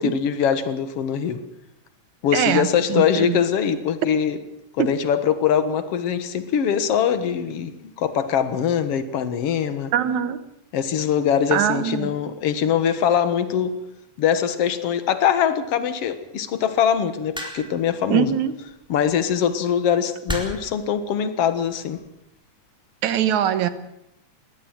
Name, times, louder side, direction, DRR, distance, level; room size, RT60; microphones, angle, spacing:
voice 1, 0.0-1.4 2.2-4.4 4.7-9.9 10.7-13.7 14.2-18.3 18.9-22.0, left 8 dB, 55° left, 11 dB, 2.3 m, -22 dB
voice 2, 2.3-3.4 4.8-4.9 9.9-10.4 11.5-12.2 18.1-18.5 23.0-23.7, right 10 dB, 80° right, 12 dB, 2.6 m, -22 dB
sound 1, 17.3-17.9 19.1-19.3 20.3-20.8 21.7-22.0, equal, ahead, 3.9 m, -31 dB
21.5 x 17.0 x 7.7 m, 0.82 s
omnidirectional pair, 3.4 m